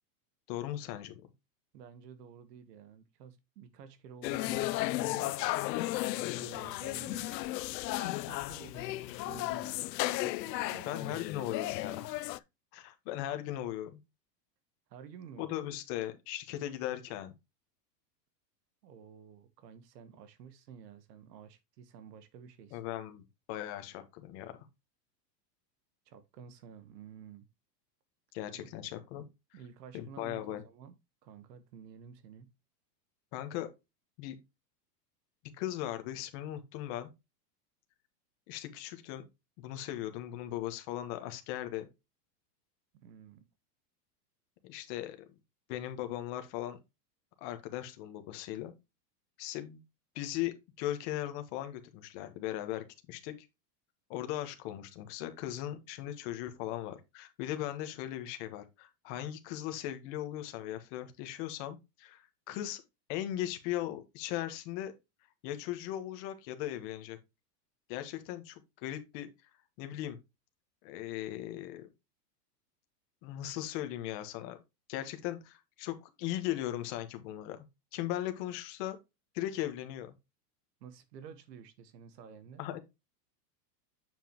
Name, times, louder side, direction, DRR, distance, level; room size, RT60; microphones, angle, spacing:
voice 1, 0.5-1.1 10.9-12.4 12.7-14.0 15.4-17.3 22.7-24.6 28.3-29.3 29.9-30.6 33.3-33.7 34.2-34.4 35.6-37.1 38.5-39.3 39.6-41.9 44.6-45.2 45.7-46.8 47.4-48.7 49.4-49.8 50.1-53.5 54.1-62.8 63.1-64.9 65.4-67.2 67.9-69.3 69.8-70.2 70.8-71.9 73.2-74.6 74.9-77.6 77.9-79.0 79.3-80.1 82.6-82.8, left 13 dB, 45° left, 1.4 m, -38 dB
voice 2, 1.7-5.3 6.3-7.4 8.0-11.5 14.9-15.5 18.8-22.8 26.1-27.5 28.5-28.7 29.5-30.9 31.2-32.5 43.0-43.5 80.8-82.6, right 7 dB, 75° right, 1.4 m, -51 dB
sound 1, 4.2-12.4, left 17 dB, 80° left, 0.6 m, -34 dB
7.5 x 5.6 x 3.0 m
supercardioid pair, 150°, 50 cm